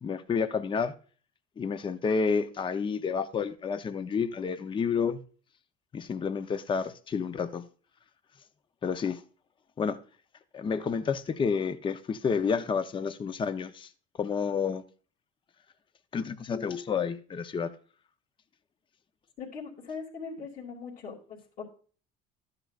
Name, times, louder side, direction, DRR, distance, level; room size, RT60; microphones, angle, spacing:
voice 1, 0.0-0.9 1.6-5.2 5.9-7.6 8.8-9.2 9.8-10.0 10.5-13.9 14.2-14.8 16.1-17.7, left 6 dB, 25° left, 0.7 m, -30 dB
voice 2, 19.4-21.6, left 5 dB, 45° left, 2.9 m, -40 dB
13.0 x 9.7 x 2.5 m
cardioid pair, 115°, 20 cm